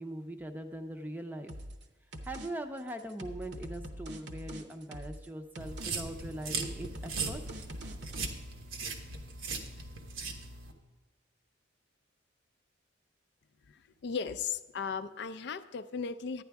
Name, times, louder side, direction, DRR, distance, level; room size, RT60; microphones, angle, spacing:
voice 1, 0.0-1.5 2.2-7.4, right 1 dB, 10° right, 6 dB, 0.5 m, -41 dB
sound 1, 1.5-1.8 2.1-2.5 2.8-5.3 5.6-5.9 6.2-8.3, equal, 55° right, 0.8 m, -44 dB
sound 2, 5.6-10.7, right 4 dB, 85° right, 1.2 m, -39 dB
voice 2, 13.7-16.4, left 6 dB, 55° left, 11 dB, 0.4 m, -37 dB
11.0 x 9.8 x 3.5 m, 1.2 s
head